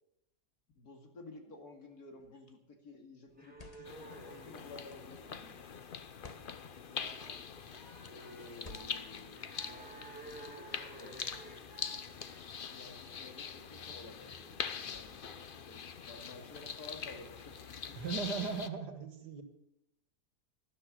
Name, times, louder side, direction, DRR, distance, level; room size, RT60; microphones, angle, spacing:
voice 1, 0.8-5.3 8.1-11.3 12.7-15.3 15.6-18.4, left 2 dB, 65° left, 4 dB, 2.8 m, -53 dB
sound 1, 2.2-2.5 3.3-4.1 4.9-5.2 6.1-6.5 7.4-7.8 8.6-9.2, left 3 dB, 25° left, 1.2 m, -54 dB
sound 2, 3.3-15.3, right 2 dB, 5° right, 2.5 m, -55 dB
sound 3, 3.8-18.7, left 6 dB, 45° left, 0.7 m, -44 dB
voice 2, 18.0-19.4, right 5 dB, 80° right, 9 dB, 2.3 m, -38 dB
12.5 x 12.0 x 8.2 m, 0.83 s
omnidirectional pair, 1.7 m